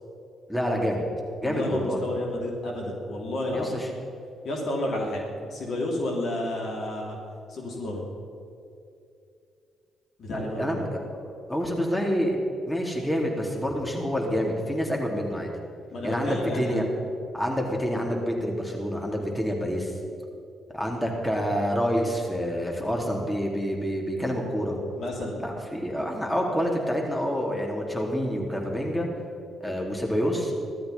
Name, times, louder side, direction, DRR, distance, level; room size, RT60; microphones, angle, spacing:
voice 1, 0.5-1.0 1.4-2.0 3.5-3.9 10.3-11.2 11.5-12.4 12.7-15.5 16.0-16.8 17.3-19.9 20.7-24.8 25.4-29.1 29.6-30.5, equal, 5° left, -1 dB, 3.8 m, -27 dB
voice 2, 1.4-3.9 4.4-5.2 5.5-7.2 7.5-8.0 10.2-10.8 15.9-16.8 24.9-25.4 25.9-26.0, left 1 dB, 60° left, -1 dB, 3.1 m, -31 dB
16.0 x 13.0 x 5.7 m, 2.6 s
hypercardioid pair, 45°, 0 cm